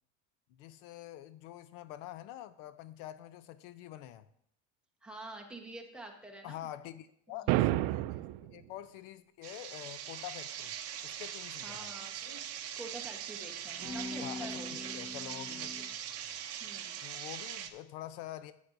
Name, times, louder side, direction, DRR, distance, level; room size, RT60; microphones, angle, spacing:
voice 1, 0.5-4.3 6.4-10.7 11.0-11.9 14.2-14.6 14.9-16.4 17.0-18.5, left 13 dB, 80° left, 0.7 m, -46 dB
voice 2, 5.0-6.7 7.3-7.6 11.6-12.2 12.8-14.9 16.6-17.0, right 2 dB, 5° right, 1.1 m, -47 dB
sound 1, 7.5-8.5, right 16 dB, 70° right, 0.5 m, -29 dB
sound 2, 9.4-17.7, right 10 dB, 40° right, 0.8 m, -41 dB
sound 3, 11.9-12.4 13.8-15.8, left 2 dB, 40° left, 3.6 m, -43 dB
13.0 x 8.6 x 2.6 m
cardioid pair, 160°, 35 cm